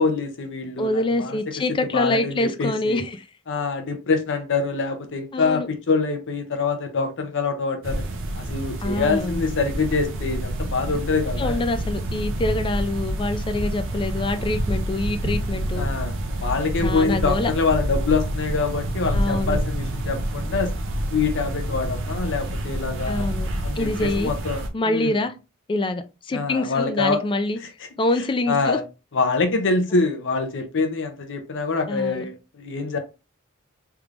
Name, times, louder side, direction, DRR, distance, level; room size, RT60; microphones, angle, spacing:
voice 1, 0.0-1.4 1.9-3.0 3.5-8.0 8.4-11.6 15.8-20.7 21.1-23.2 23.6-25.2 26.3-27.2 28.5-28.8 29.1-33.0, left 4 dB, 55° left, 0.7 m, -25 dB
voice 2, 0.8-3.2 5.3-5.7 8.8-9.4 11.4-15.9 16.8-17.5 19.1-19.6 23.1-23.5 23.8-24.3 24.7-25.3 25.7-27.6 28.0-28.8 31.9-32.2, left 2 dB, 20° left, 0.3 m, -25 dB
sound 1, 7.8-24.7, right 1 dB, 60° right, 0.6 m, -28 dB
3.4 x 3.2 x 2.4 m
head